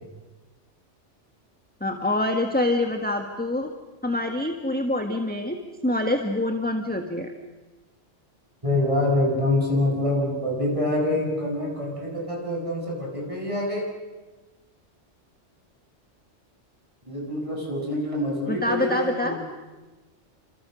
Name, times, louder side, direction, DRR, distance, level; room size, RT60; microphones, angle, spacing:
voice 1, 1.8-3.7 4.0-7.3 18.5-19.4, left 1 dB, 10° left, 4 dB, 1.6 m, -26 dB
voice 2, 8.6-13.9 17.1-19.4, left 1 dB, 25° right, -1 dB, 6.8 m, -25 dB
29.0 x 26.5 x 6.5 m, 1.2 s
omnidirectional pair, 1.2 m